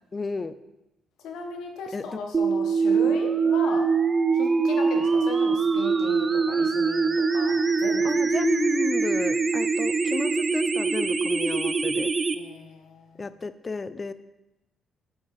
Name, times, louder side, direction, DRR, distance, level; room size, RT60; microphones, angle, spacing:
voice 1, 0.1-0.6 1.9-2.2 8.0-12.1 13.2-14.1, left 3 dB, 30° left, 14 dB, 0.4 m, -32 dB
voice 2, 1.2-3.9 4.3-8.1 12.4-13.3, left 4 dB, 85° left, 4 dB, 1.2 m, -37 dB
sound 1, 2.3-12.4, right 4 dB, 30° right, 0.5 m, -23 dB
7.7 x 5.5 x 4.7 m, 0.96 s
cardioid pair, 90°, 0 cm